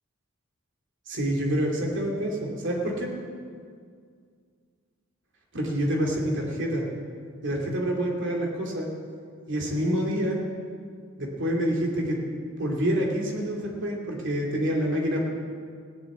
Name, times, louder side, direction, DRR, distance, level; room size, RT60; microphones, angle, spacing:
voice 1, 1.1-3.1 5.5-6.9 7.4-8.9 9.5-10.4 11.2-12.2 12.6-15.2, equal, 60° right, 0 dB, 2.7 m, -27 dB
16.0 x 7.9 x 8.5 m, 2.1 s
head